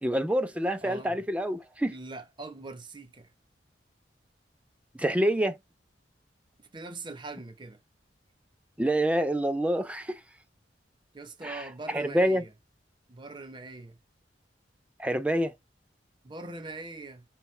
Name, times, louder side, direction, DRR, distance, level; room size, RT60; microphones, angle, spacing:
voice 1, 0.0-1.9 5.0-5.6 8.8-10.2 11.4-11.6 11.9-12.4 15.0-15.5, right 1 dB, 5° right, 0.4 m, -27 dB
voice 2, 0.8-1.2 1.9-3.3 6.6-7.8 11.1-12.5 13.1-14.0 16.2-17.2, right 2 dB, 25° right, 0.8 m, -42 dB
5.4 x 3.0 x 3.1 m
head